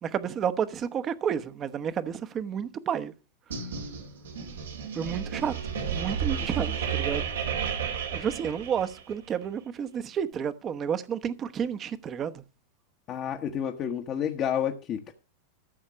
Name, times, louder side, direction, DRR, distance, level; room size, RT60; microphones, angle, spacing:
voice 1, 0.0-3.1 4.9-5.5 5.9-7.3 8.1-12.4, right 8 dB, 35° right, 1.0 m, -31 dB
sound 1, 3.5-9.1, right 7 dB, 80° right, 2.3 m, -32 dB
voice 2, 6.4-6.8 13.1-15.1, left 9 dB, 40° left, 1.1 m, -30 dB
13.5 x 6.4 x 6.1 m
hypercardioid pair, 100°, 0 cm